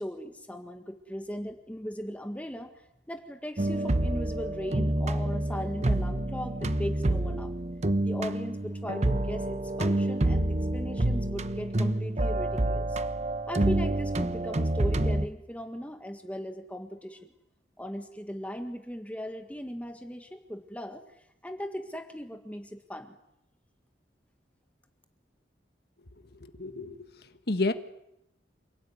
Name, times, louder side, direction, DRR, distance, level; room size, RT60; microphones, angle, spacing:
voice 1, 0.0-2.7 3.1-7.5 8.0-13.0 13.5-17.3 17.8-21.0 21.4-23.1, equal, 10° left, 6 dB, 1.7 m, -38 dB
sound 1, 3.6-15.2, right 1 dB, 40° right, 1.0 m, -28 dB
voice 2, 26.4-27.1 27.5-27.7, left 2 dB, 65° left, 9 dB, 1.7 m, -30 dB
28.0 x 18.5 x 9.6 m, 0.85 s
head